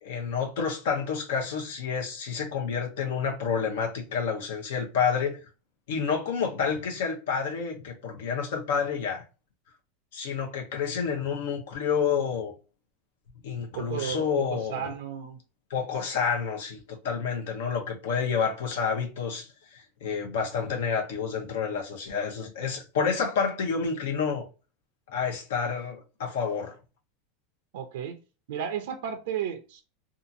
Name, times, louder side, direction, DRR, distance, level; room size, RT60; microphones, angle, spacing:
voice 1, 0.0-5.4 5.9-9.2 10.1-12.5 13.4-14.9 15.7-24.5 25.1-26.7, left 6 dB, 85° left, 0.7 m, -29 dB
voice 2, 13.7-15.4 27.7-28.2 28.5-29.8, right 8 dB, 80° right, 0.5 m, -33 dB
2.8 x 2.4 x 2.5 m
supercardioid pair, 155°, 0 cm